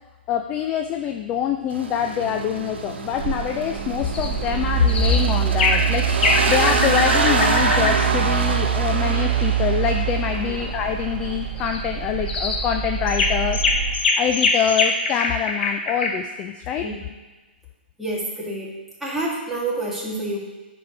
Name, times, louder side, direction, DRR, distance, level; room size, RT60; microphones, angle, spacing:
voice 1, 0.3-13.6 14.2-16.9, left 9 dB, 20° left, 5 dB, 0.4 m, -25 dB
sound 1, 1.7-11.4, right 4 dB, 75° right, 1.1 m, -27 dB
Mechanical fan, 2.7-14.0, right 10 dB, 35° right, 0.9 m, -25 dB
sound 2, 4.1-4.3 4.9-5.2 5.6-5.9 6.2-8.0 11.6-11.8 12.3-12.6 13.1-16.1, left 3 dB, 65° left, 1.2 m, -23 dB
voice 2, 18.0-18.7 19.0-20.4, right 2 dB, ahead, -6 dB, 1.7 m, -28 dB
9.6 x 4.9 x 5.0 m, 1.2 s
hypercardioid pair, 155°, 6 cm